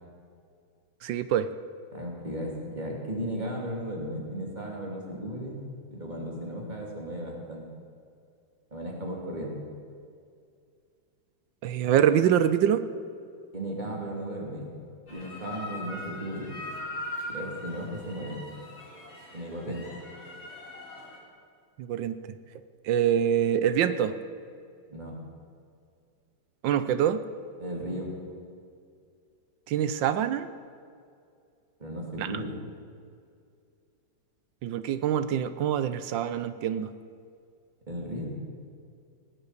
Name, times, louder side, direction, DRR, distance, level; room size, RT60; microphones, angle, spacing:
voice 1, 1.0-1.5 11.6-12.8 21.8-22.2 22.8-24.1 26.6-27.2 29.7-30.5 32.2-32.3 34.6-36.9, right 9 dB, 75° right, 12 dB, 1.3 m, -25 dB
voice 2, 1.9-5.6 5.9-7.6 8.7-9.6 13.5-14.7 15.1-16.5 17.3-18.4 19.3-19.8 24.9-25.2 27.6-28.1 31.8-32.6 37.9-38.3, equal, 20° right, -1 dB, 2.9 m, -35 dB
sound 1, 15.1-21.2, left 1 dB, 35° left, 3.3 m, -40 dB
18.5 x 8.0 x 8.2 m, 2.3 s
omnidirectional pair, 2.2 m